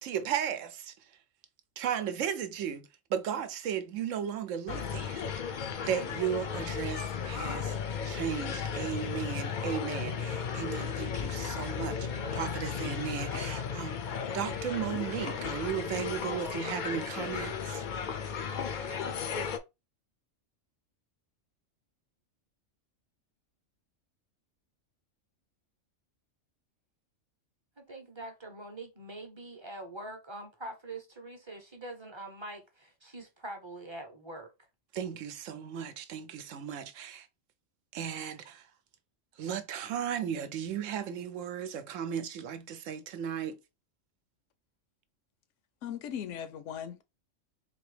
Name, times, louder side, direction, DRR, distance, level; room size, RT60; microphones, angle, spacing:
voice 1, 0.0-0.9 1.8-7.8 8.0-17.8 34.9-37.3 37.9-38.7 39.4-43.6, right 8 dB, 80° right, 1.0 m, -35 dB
sound 1, 4.7-19.6, left 6 dB, 55° left, 0.5 m, -35 dB
voice 2, 27.8-34.5, right 1 dB, 25° right, 0.7 m, -44 dB
voice 3, 45.8-47.0, left 9 dB, 75° left, 0.9 m, -38 dB
4.1 x 2.9 x 3.2 m
omnidirectional pair, 1.3 m